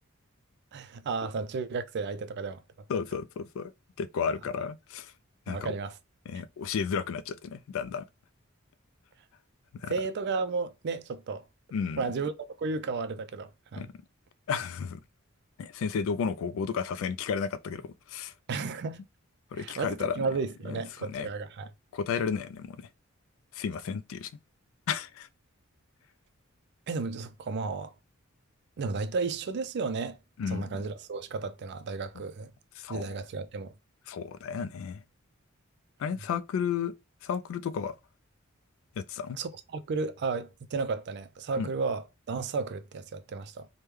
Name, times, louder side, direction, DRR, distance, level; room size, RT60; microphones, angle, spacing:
voice 1, 0.7-2.6 5.5-5.9 9.9-11.4 12.0-12.3 12.6-13.8 18.5-19.0 19.5-21.7 26.9-27.9 28.8-30.2 30.4-32.5 32.9-33.7 39.4-43.7, right 4 dB, 55° right, 0.4 m, -33 dB
voice 2, 2.9-3.7 4.0-5.1 5.5-5.7 6.3-8.0 9.7-9.9 11.7-12.0 13.8-13.9 14.5-15.0 15.6-18.3 19.5-20.3 20.7-21.3 21.9-22.9 23.5-24.3 24.9-25.3 30.4-30.8 32.2-32.3 32.8-33.2 34.1-35.0 36.0-36.9 37.2-37.9 39.0-39.4 41.6-41.7, left 6 dB, 70° left, 0.3 m, -33 dB
3.1 x 2.2 x 3.4 m
head